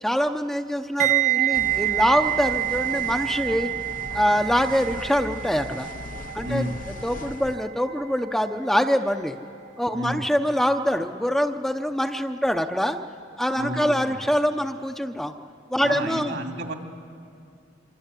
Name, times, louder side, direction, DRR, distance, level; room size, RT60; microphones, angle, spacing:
voice 1, 0.0-3.7 4.1-5.9 6.3-9.4 9.8-13.0 13.4-15.3 15.7-16.3, equal, ahead, 5 dB, 0.7 m, -24 dB
sound 1, 1.0-10.0 10.2-10.5, right 15 dB, 40° right, 1.0 m, -28 dB
sound 2, 1.5-7.6, left 3 dB, 45° left, 0.6 m, -39 dB
voice 2, 6.4-6.8 9.9-10.3 13.6-14.3 15.8-16.7, right 1 dB, 70° right, 3 dB, 2.6 m, -31 dB
25.5 x 25.5 x 8.3 m, 2.5 s
head